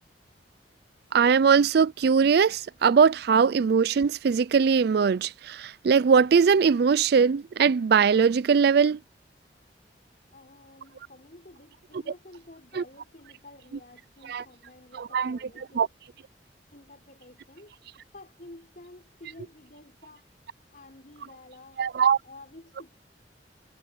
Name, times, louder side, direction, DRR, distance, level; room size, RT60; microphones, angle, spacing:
voice 1, 1.1-9.0 12.8-12.9 14.3-14.4 15.1-15.4 15.8-15.9 21.8-22.2, right 6 dB, 65° right, 0.4 m, -21 dB
voice 2, 10.3-16.0 16.7-17.7 18.1-20.3 20.7-21.8 22.2-22.9, left 2 dB, 50° left, 5.8 m, -50 dB
head